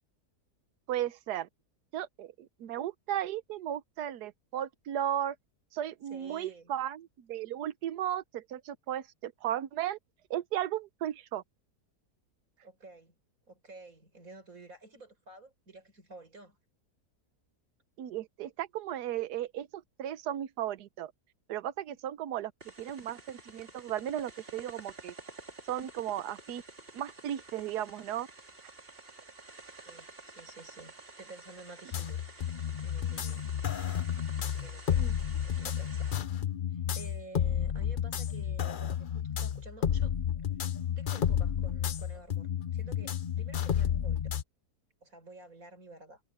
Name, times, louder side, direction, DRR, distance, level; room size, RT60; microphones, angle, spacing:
voice 1, 0.9-1.5 1.9-5.4 5.7-10.0 10.3-11.4 18.0-21.1 21.5-22.5 22.8-25.1 25.7-26.6 26.9-28.3 35.0-35.1, right 11 dB, 80° right, 1.4 m, -35 dB
voice 2, 6.1-6.7 12.6-13.1 13.5-16.6 29.8-32.2 32.8-33.4 34.4-35.0 35.4-36.2 36.7-40.1 41.0-44.2 45.0-46.2, right 3 dB, 55° right, 5.1 m, -51 dB
sound 1, 22.6-36.2, right 3 dB, 35° right, 3.3 m, -50 dB
sound 2, 31.9-44.4, left 9 dB, 55° left, 0.6 m, -31 dB
omnidirectional pair, 1.7 m